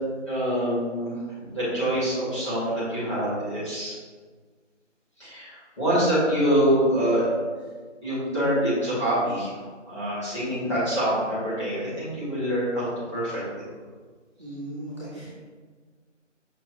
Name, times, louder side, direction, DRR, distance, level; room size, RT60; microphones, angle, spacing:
voice 1, 0.3-3.9 5.2-7.3 8.0-9.6 9.9-13.6, equal, 25° left, -11 dB, 1.3 m, -25 dB
voice 2, 14.4-15.3, right 1 dB, 25° right, -12 dB, 1.0 m, -37 dB
5.7 x 3.3 x 2.6 m, 1.5 s
figure-of-eight pair, 175°, 37 cm